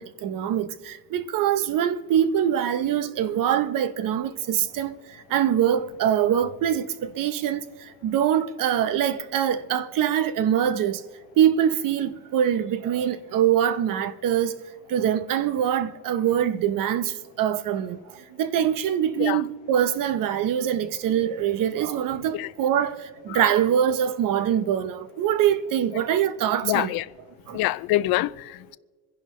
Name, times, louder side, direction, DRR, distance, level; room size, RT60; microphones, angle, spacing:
voice 1, 0.0-11.0 11.4-14.6 14.9-26.9 27.5-27.6, right 9 dB, 65° right, 0.8 m, -24 dB
voice 2, 26.6-27.1 27.5-28.8, left 16 dB, 80° left, 0.5 m, -25 dB
26.5 x 11.0 x 3.2 m
cardioid pair, 155°, 36 cm